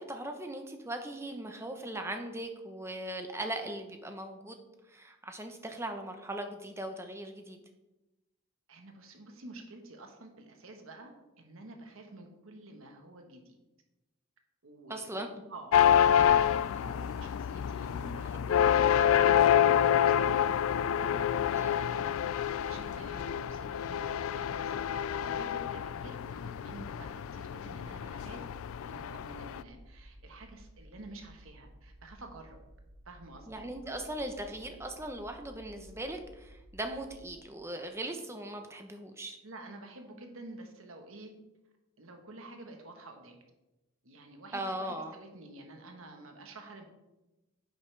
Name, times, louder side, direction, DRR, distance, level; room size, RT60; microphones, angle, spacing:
voice 1, 0.0-4.6 4.9-7.6 14.9-15.4 21.5-21.8 33.5-39.4 44.5-45.1, right 1 dB, 10° right, 5 dB, 0.8 m, -39 dB
voice 2, 8.7-13.6 14.6-19.7 20.0-20.7 21.4-24.7 25.1-28.4 28.8-32.6 33.0-33.6 39.4-41.3 42.0-43.4 44.0-46.8, right 2 dB, 75° right, 4 dB, 1.3 m, -50 dB
sound 1, 15.7-29.6, left 9 dB, 75° left, 0.3 m, -27 dB
sound 2, 20.7-37.4, equal, 55° right, 1.7 m, -55 dB
10.0 x 8.0 x 3.4 m, 1.0 s
head